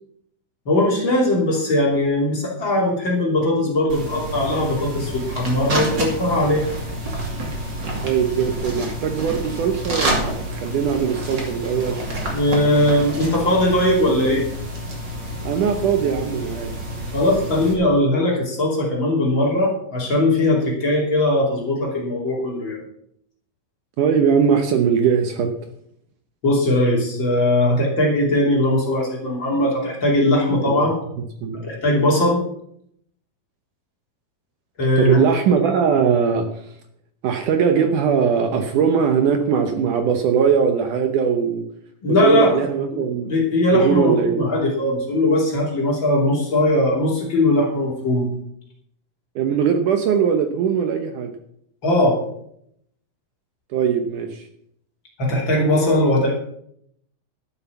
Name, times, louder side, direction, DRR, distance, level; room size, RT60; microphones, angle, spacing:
voice 1, 0.6-6.6 12.3-14.4 17.1-22.8 26.4-30.9 31.5-32.4 34.8-35.2 42.0-42.7 42.9-43.0 43.3-48.3 51.8-52.2 55.2-56.3, left 1 dB, 35° left, -2 dB, 3.2 m, -19 dB
sound 1, 3.9-17.7, right 1 dB, 35° right, 2.6 m, -29 dB
voice 2, 8.0-12.0 15.4-16.7 24.0-25.5 30.7-30.8 31.4-31.6 35.0-36.5 37.2-41.6 42.1-43.3 43.7-44.5 49.4-51.3 53.7-54.4, right 7 dB, 70° right, 6 dB, 2.1 m, -20 dB
12.0 x 7.9 x 7.0 m, 0.72 s
omnidirectional pair, 4.4 m